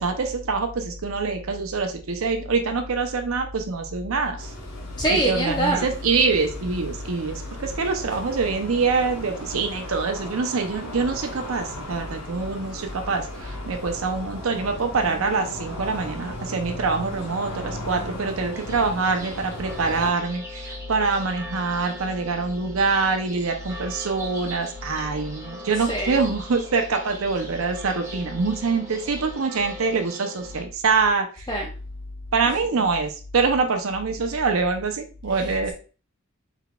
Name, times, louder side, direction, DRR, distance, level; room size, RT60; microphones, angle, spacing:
voice 1, 0.0-4.5 5.1-31.5 32.3-35.7, right 4 dB, 75° right, 5 dB, 0.6 m, -25 dB
sound 1, 4.4-20.1, left 1 dB, 85° left, 1.0 m, -37 dB
voice 2, 5.0-5.9 25.9-26.2 31.5-31.7 35.3-35.7, right 1 dB, 20° left, 0 dB, 0.6 m, -25 dB
sound 2, 18.5-30.6, left 1 dB, 15° right, 1.2 m, -40 dB
4.5 x 3.9 x 2.3 m, 0.35 s
head